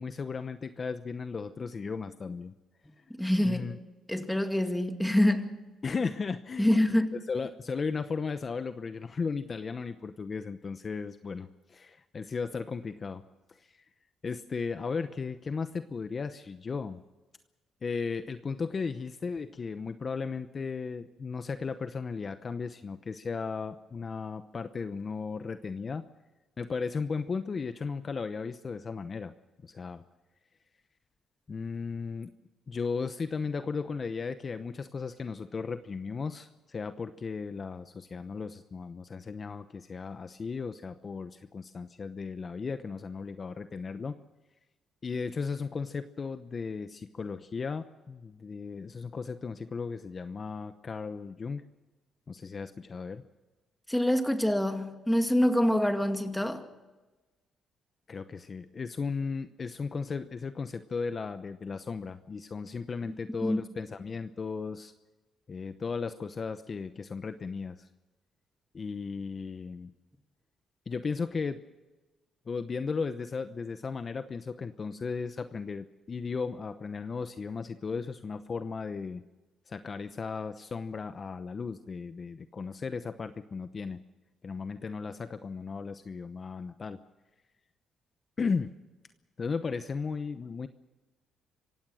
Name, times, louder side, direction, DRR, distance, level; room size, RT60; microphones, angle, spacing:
voice 1, 0.0-2.5 3.0-3.1 3.4-3.8 5.8-7.0 7.3-13.2 13.5-13.8 14.2-17.0 17.8-26.0 26.6-29.3 29.6-30.0 31.5-32.3 32.7-44.1 45.0-51.6 52.3-53.2 58.1-64.9 65.5-67.9 68.7-69.9 70.9-71.6 72.5-79.2 79.7-84.0 84.4-87.0 88.4-88.7 89.4-90.7, left 5 dB, 40° left, 0.9 m, -35 dB
voice 2, 3.2-3.7 4.1-5.7 6.6-7.2 53.9-56.6 63.0-63.1 63.4-63.6, left 1 dB, 5° left, 2.2 m, -26 dB
26.5 x 16.5 x 6.4 m
cardioid pair, 90°, 0 cm